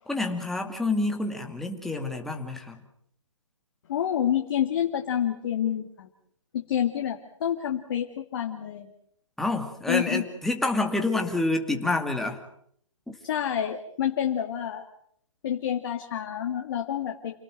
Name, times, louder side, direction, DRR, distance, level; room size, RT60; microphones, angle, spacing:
voice 1, 0.1-2.8 9.4-12.4 13.1-13.2, left 2 dB, ahead, 3 dB, 2.4 m, -28 dB
voice 2, 3.9-6.1 6.5-8.9 9.9-10.2 13.3-14.8 15.4-17.4, left 9 dB, 45° left, 3 dB, 2.4 m, -28 dB
29.5 x 18.5 x 7.7 m, 0.69 s
figure-of-eight pair, 140°, 16 cm